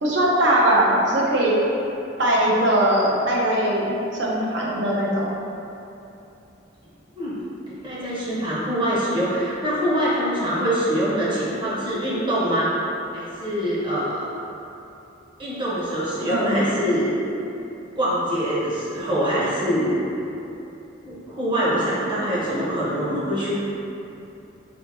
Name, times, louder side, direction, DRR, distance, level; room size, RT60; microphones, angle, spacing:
voice 1, 0.0-1.6 2.2-5.3 16.3-16.8, right 1 dB, 65° right, -4 dB, 0.7 m, -20 dB
voice 2, 7.2-12.7 13.1-14.3 15.4-17.1 18.0-20.1 21.0-23.6, equal, 25° right, -8 dB, 0.8 m, -24 dB
4.4 x 2.7 x 2.6 m, 2.9 s
head